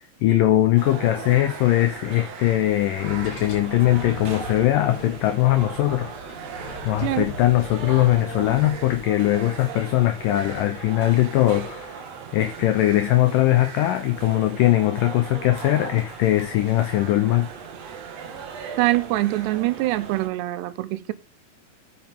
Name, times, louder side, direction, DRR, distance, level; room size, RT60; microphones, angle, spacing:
voice 1, 0.2-6.1 6.9-12.0 12.3-17.5, left 14 dB, 90° left, 1.9 m, -21 dB
sound 1, 0.8-20.3, right 6 dB, 55° right, 1.9 m, -38 dB
sound 2, 3.0-9.0, left 2 dB, 50° left, 5.4 m, -40 dB
voice 2, 18.8-21.1, right 17 dB, 85° right, 2.9 m, -24 dB
11.5 x 8.8 x 3.6 m
omnidirectional pair, 4.9 m